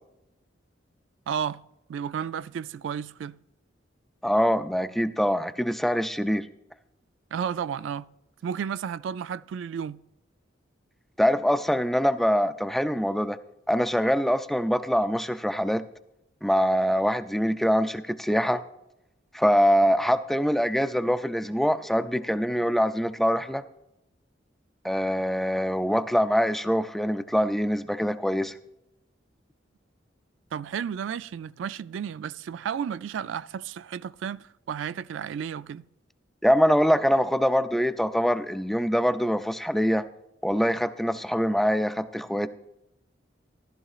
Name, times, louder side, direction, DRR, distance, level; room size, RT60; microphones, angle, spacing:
voice 1, 1.3-1.6 1.9-3.4 7.3-8.1 8.4-10.0 30.5-35.9, right 7 dB, 85° right, 0.3 m, -32 dB
voice 2, 4.2-6.5 11.2-13.4 13.7-15.8 16.4-18.6 19.3-23.6 24.8-28.5 36.4-40.0 40.4-42.5, equal, ahead, 0.3 m, -24 dB
14.0 x 12.0 x 2.4 m
head